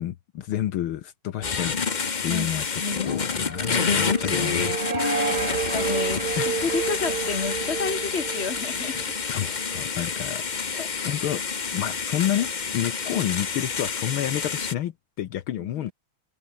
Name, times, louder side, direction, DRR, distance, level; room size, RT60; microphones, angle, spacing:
voice 1, 0.0-1.7 2.2-4.8 6.4-6.6 9.2-10.4 11.0-11.4 11.7-15.9, left 12 dB, 75° left, 1.8 m, -29 dB
sound 1, 1.4-14.7, left 5 dB, 50° left, 0.5 m, -28 dB
voice 2, 2.8-3.2 4.9-9.0 10.7-10.9 15.5-15.9, left 5 dB, 30° left, 2.3 m, -31 dB
sound 2, 3.1-10.1, right 5 dB, 45° right, 2.6 m, -31 dB
omnidirectional pair, 2.4 m